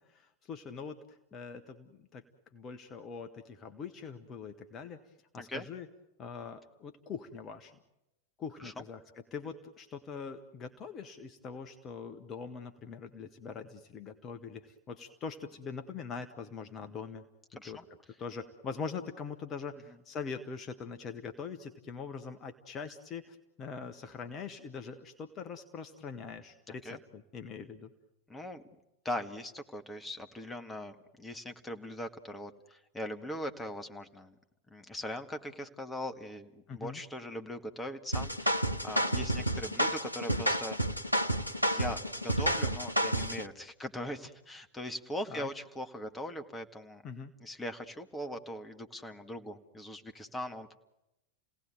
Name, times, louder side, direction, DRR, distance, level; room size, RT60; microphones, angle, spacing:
voice 1, 0.1-2.2 2.5-5.0 5.3-5.9 6.2-7.8 8.4-9.0 9.3-17.2 17.6-17.8 18.2-27.9 36.7-37.0 45.3-45.5 47.0-47.3, left 5 dB, 30° left, 7 dB, 1.5 m, -43 dB
voice 2, 26.7-27.0 28.3-28.6 29.1-34.3 34.7-40.8 41.6-47.0 47.4-50.8, left 1 dB, 10° left, 7 dB, 1.8 m, -40 dB
sound 1, 38.1-43.4, right 1 dB, 90° right, 0.9 m, -30 dB
29.5 x 18.0 x 9.4 m, 0.94 s
figure-of-eight pair, 90°, 0 cm